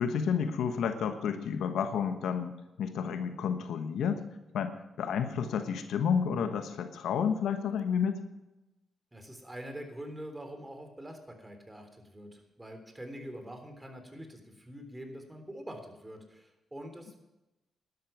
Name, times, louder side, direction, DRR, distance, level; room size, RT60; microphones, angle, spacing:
voice 1, 0.0-4.2 4.5-8.2, left 7 dB, 75° left, 9 dB, 1.1 m, -31 dB
voice 2, 9.1-17.2, equal, 15° right, 5 dB, 3.6 m, -45 dB
12.0 x 11.5 x 5.9 m, 0.96 s
supercardioid pair, 55°, 0 cm